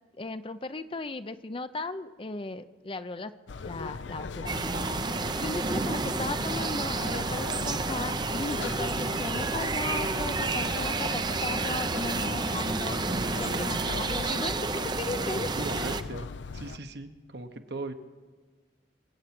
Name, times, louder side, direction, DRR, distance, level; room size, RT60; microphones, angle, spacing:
voice 1, 0.2-3.3 3.6-4.5 5.4-13.0 13.4-15.7, left 3 dB, 30° left, 12 dB, 0.5 m, -36 dB
sound 1, 3.5-16.8, left 4 dB, 80° left, 0.6 m, -39 dB
sound 2, 4.5-16.0, right 3 dB, 25° right, 0.5 m, -30 dB
voice 2, 15.6-16.3 16.5-17.9, right 2 dB, 60° right, 7 dB, 1.1 m, -38 dB
26.5 x 8.8 x 6.0 m, 1.4 s
head